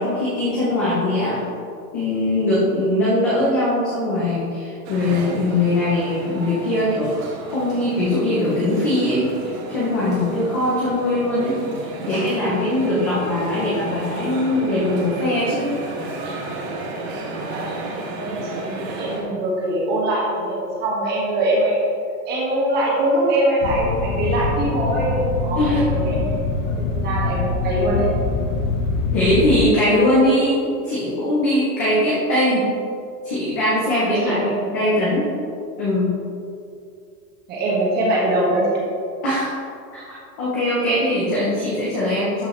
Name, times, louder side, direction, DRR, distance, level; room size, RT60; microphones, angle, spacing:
voice 1, 0.0-1.4 1.9-15.7 25.6-25.8 29.1-32.7 33.2-35.3 35.8-36.1 39.2-39.6 39.9-42.5, left 1 dB, 15° left, -8 dB, 0.4 m, -21 dB
sound 1, 4.8-19.2, right 2 dB, 45° right, 1.5 m, -32 dB
voice 2, 17.9-21.8 22.3-26.2 26.8-28.1 34.0-34.9 37.5-38.8, right 1 dB, 20° right, -4 dB, 1.5 m, -23 dB
sound 2, 23.6-29.7, left 3 dB, 50° left, 0.8 m, -24 dB
12.0 x 5.3 x 3.0 m, 2.4 s
supercardioid pair, 175°, 46 cm